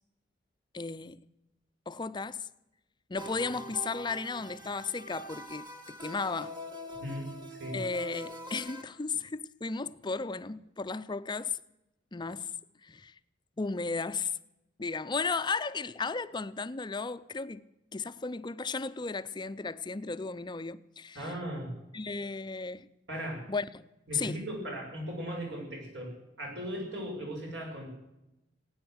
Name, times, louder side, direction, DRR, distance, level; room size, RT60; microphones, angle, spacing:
voice 1, 0.7-1.2 1.9-2.5 3.1-6.6 7.7-11.6 12.1-12.6 12.8-13.1 13.6-14.4 14.8-17.6 17.9-21.3 21.9-22.9 23.5-23.9 24.1-24.4, left 4 dB, 25° left, 0.5 m, -35 dB
sound 1, 3.2-8.8, equal, 25° right, 1.6 m, -44 dB
voice 2, 6.9-7.8 21.1-21.7 23.1-23.4 24.1-27.9, equal, 75° right, 6.8 m, -38 dB
18.0 x 9.6 x 7.9 m
head